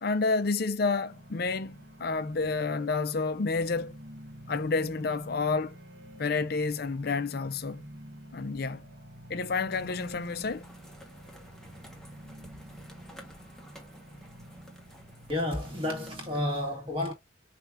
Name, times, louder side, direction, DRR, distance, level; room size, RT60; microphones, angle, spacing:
voice 1, 0.0-4.0 4.5-5.8 6.2-7.9 8.3-8.8 9.3-10.7, left 4 dB, 50° left, 0.5 m, -29 dB
sound 1, 1.1-16.5, right 1 dB, 55° right, 1.4 m, -49 dB
sound 2, 9.7-16.4, equal, ahead, 0.9 m, -52 dB
voice 2, 15.3-17.1, left 1 dB, 25° right, 1.7 m, -31 dB
5.6 x 2.4 x 3.5 m
head